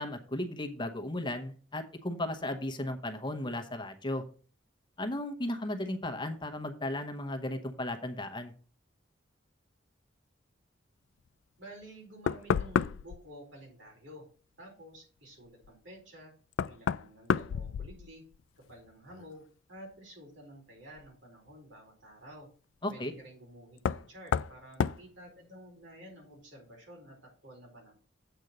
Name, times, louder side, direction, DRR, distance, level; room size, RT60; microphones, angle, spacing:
voice 1, 0.0-4.2 5.0-8.5 22.8-23.1, left 1 dB, 25° left, 6 dB, 0.9 m, -35 dB
voice 2, 11.6-14.3 14.6-16.3 16.6-18.3 18.7-22.5 22.9-27.9, equal, 80° right, -2 dB, 4.4 m, -51 dB
Knock, 11.8-11.9 12.3-13.2 15.6-15.7 16.5-18.4 18.7-19.3 21.0-21.1 23.8-24.1 24.3-24.5 24.8-25.0, left 7 dB, 85° left, 0.3 m, -30 dB
8.0 x 4.4 x 6.5 m, 0.39 s
head